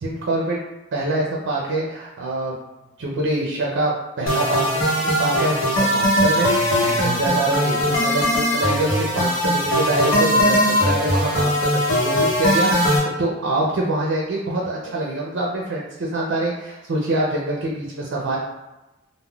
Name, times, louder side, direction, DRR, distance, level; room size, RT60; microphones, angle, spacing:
voice 1, 0.0-0.6 0.9-2.6 3.0-18.4, right 1 dB, 65° right, -2 dB, 0.4 m, -25 dB
sound 1, 4.3-13.0, equal, 80° left, 0.8 m, -20 dB
3.5 x 2.1 x 2.2 m, 1.0 s
head